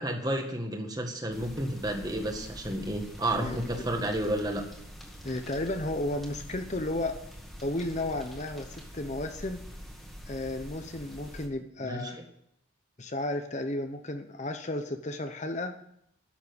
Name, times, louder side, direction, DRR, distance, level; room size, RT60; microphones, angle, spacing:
voice 1, 0.0-4.6 11.8-12.2, right 1 dB, 20° right, 4 dB, 1.7 m, -31 dB
sound 1, 1.3-11.5, equal, ahead, 1.8 m, -45 dB
voice 2, 3.4-3.9 5.2-7.2 7.6-9.6 10.3-12.2 13.0-15.7, left 1 dB, 35° left, 7 dB, 0.8 m, -33 dB
11.5 x 7.4 x 9.6 m, 0.72 s
head